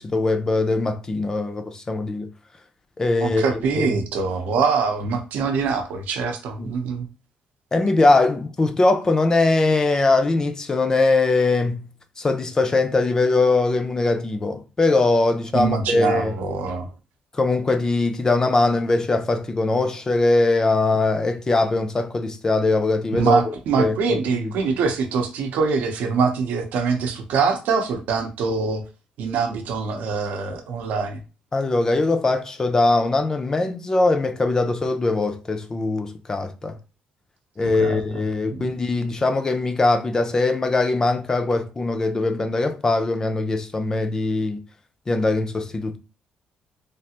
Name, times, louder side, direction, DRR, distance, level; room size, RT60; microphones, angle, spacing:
voice 1, 0.0-2.3 3.0-3.4 3.8-4.0 6.6-6.7 7.7-11.9 12.2-16.4 17.3-23.4 23.8-24.5 31.5-36.8 37.6-44.6 45.1-46.0, left 3 dB, 20° left, 0.4 m, -21 dB
voice 2, 3.2-7.1 15.5-16.9 23.1-28.8 29.2-31.2 37.8-38.0 38.5-38.7, right 5 dB, 80° right, 0.6 m, -24 dB
3.3 x 2.4 x 2.8 m
cardioid pair, 130°, 3 cm